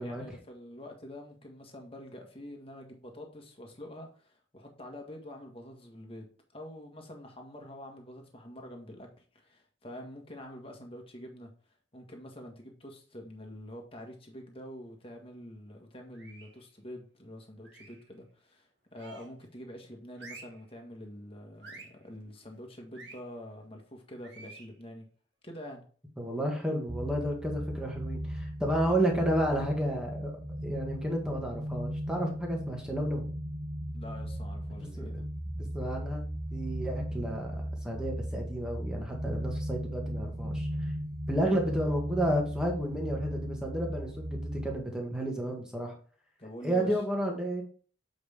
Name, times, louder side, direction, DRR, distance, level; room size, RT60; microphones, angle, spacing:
voice 1, 0.0-6.3 6.5-11.5 11.9-25.1 25.4-25.8 33.9-35.2 46.4-47.0, left 1 dB, 30° left, 2 dB, 1.7 m, -46 dB
sound 1, 16.1-16.6 17.6-18.1 18.9-19.4 20.1-20.6 21.6-22.0 22.9-23.2 24.2-24.7, right 3 dB, 60° right, 1.9 m, -49 dB
voice 2, 26.2-30.3 30.6-33.2 35.0-35.1 35.7-36.3 36.5-40.7 41.3-45.9 46.6-47.6, right 1 dB, 5° right, 0 dB, 1.8 m, -31 dB
sound 2, 26.9-44.8, equal, 30° right, 1.3 m, -36 dB
7.8 x 5.3 x 3.7 m, 0.42 s
head